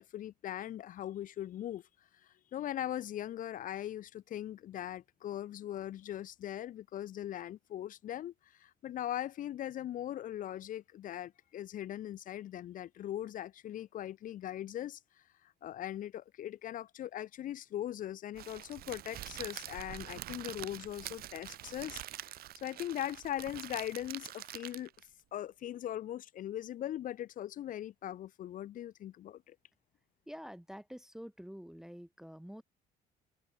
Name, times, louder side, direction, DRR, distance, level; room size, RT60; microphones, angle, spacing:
voice 1, 0.0-1.8 2.5-8.3 8.6-15.0 15.6-22.3 22.6-24.9 25.3-29.6, left 12 dB, 50° left, 0.6 m, -40 dB
Crackle, 18.4-25.1, right 14 dB, 65° right, 1.1 m, -45 dB
voice 2, 30.3-32.6, equal, 5° right, 0.6 m, -47 dB
cardioid pair, 110°, 17 cm